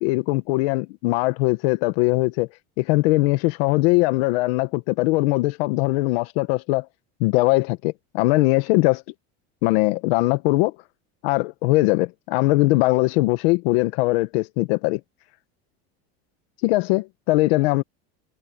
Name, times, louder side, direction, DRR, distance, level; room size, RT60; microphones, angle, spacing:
voice 1, 0.0-2.5 2.8-6.9 7.2-9.0 9.6-10.7 11.2-15.0 16.6-17.8, left 21 dB, 65° left, 1.2 m, -21 dB
cardioid pair, 160°, 32 cm